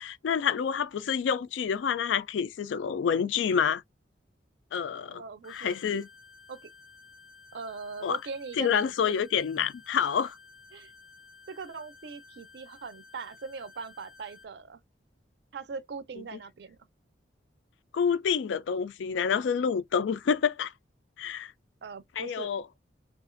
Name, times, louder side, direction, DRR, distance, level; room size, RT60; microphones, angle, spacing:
voice 1, 0.0-3.8 4.7-5.2 5.5-6.1 8.0-8.2 8.6-10.4 17.9-20.7 21.2-21.5 22.2-22.6, left 7 dB, 80° left, 0.3 m, -28 dB
voice 2, 5.1-5.8 6.5-6.7 7.5-9.2 10.7-10.9 11.5-14.8 15.5-16.8 21.8-22.5, right 5 dB, 60° right, 0.4 m, -41 dB
sound 1, 5.4-14.4, left 4 dB, 5° right, 0.6 m, -54 dB
2.8 x 2.4 x 2.4 m
head